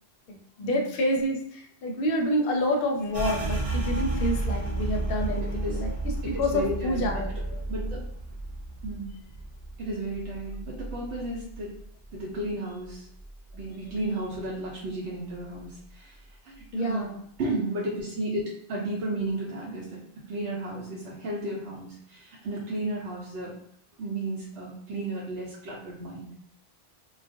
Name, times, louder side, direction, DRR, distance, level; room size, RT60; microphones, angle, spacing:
voice 1, 0.3-5.9 6.4-7.6 16.7-17.2, left 1 dB, 65° left, 2 dB, 0.7 m, -28 dB
sound 1, 3.1-12.5 12.8-14.1 14.4-14.9 15.3-15.9, right 2 dB, 45° right, 0.5 m, -33 dB
voice 2, 5.4-5.8 6.2-7.2 7.7-8.0 8.8-9.1 9.8-11.7 12.1-13.1 13.5-16.2 16.4-17.1 17.4-23.6 24.0-26.3, right 1 dB, 90° right, -5 dB, 0.9 m, -33 dB
2.3 x 2.1 x 2.5 m, 0.69 s
omnidirectional pair, 1.1 m